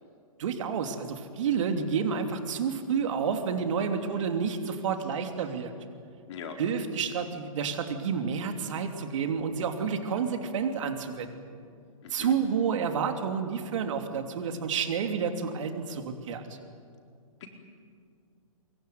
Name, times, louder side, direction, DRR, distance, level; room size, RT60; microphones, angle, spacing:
voice 1, 0.4-5.7 6.6-11.3 12.1-16.4, right 6 dB, 60° right, 6 dB, 3.2 m, -30 dB
voice 2, 6.3-6.6 12.0-12.4 16.5-16.6 17.4-17.5, left 7 dB, 55° left, 2 dB, 4.6 m, -42 dB
23.5 x 23.0 x 9.4 m, 2.3 s
hypercardioid pair, 145°, 18 cm